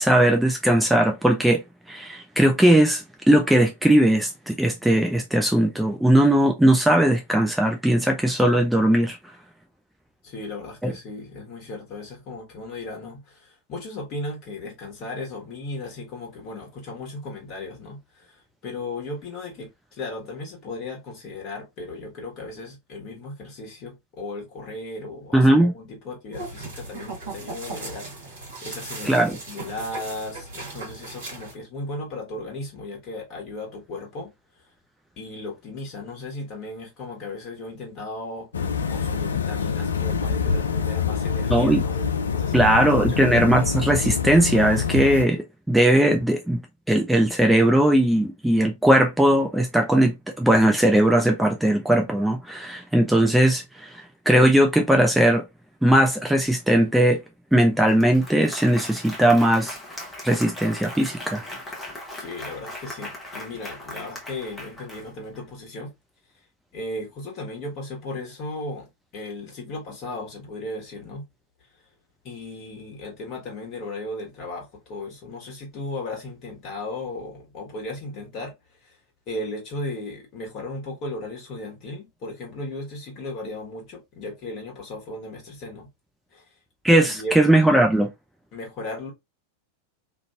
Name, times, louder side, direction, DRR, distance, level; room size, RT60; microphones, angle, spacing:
voice 1, 0.0-1.6 1.9-9.2 10.8-10.9 25.3-25.7 29.0-29.4 41.5-41.8 42.5-46.6 46.9-55.4 55.8-57.2 57.5-59.8 60.2-61.4 86.8-88.1, right 1 dB, 5° right, 0.4 m, -19 dB
voice 2, 10.2-34.3 35.2-38.5 38.9-43.2 62.1-65.9 66.7-71.2 72.2-78.5 78.8-79.0 79.3-85.9 86.3-86.4 87.0-87.4 88.5-89.1, left 2 dB, 40° left, 1.4 m, -36 dB
sound 1, 26.3-31.5, right 3 dB, 60° right, 1.3 m, -37 dB
sound 2, 38.5-45.3, left 6 dB, 70° left, 0.3 m, -25 dB
Applause, 57.5-57.6 57.9-65.4, left 1 dB, 10° left, 1.0 m, -39 dB
2.9 x 2.5 x 2.3 m
figure-of-eight pair, 90°, 0 cm